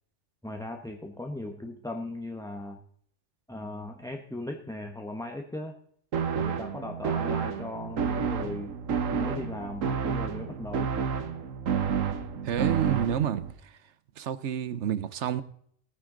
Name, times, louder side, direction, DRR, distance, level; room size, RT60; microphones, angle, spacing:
voice 1, 0.4-2.8 3.5-5.7 6.3-8.7 9.2-10.9, left 1 dB, 5° left, 0.9 m, -38 dB
sound 1, 6.1-13.5, right 6 dB, 85° right, 1.4 m, -30 dB
voice 2, 12.4-13.7 14.2-15.4, right 9 dB, 70° right, 1.0 m, -29 dB
18.5 x 9.7 x 3.8 m
omnidirectional pair, 1.3 m